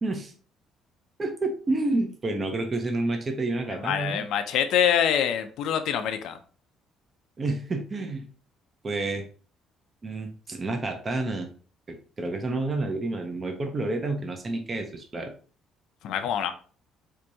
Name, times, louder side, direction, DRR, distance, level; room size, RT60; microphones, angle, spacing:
voice 1, 0.0-0.3 1.2-4.2 7.4-8.3 8.8-9.2 10.0-11.5 11.9-15.3, right 2 dB, 20° right, 5 dB, 0.5 m, -29 dB
voice 2, 3.8-6.4 16.0-16.5, left 9 dB, 65° left, 8 dB, 0.4 m, -25 dB
4.5 x 2.6 x 2.6 m, 0.40 s
cardioid pair, 170°, 0 cm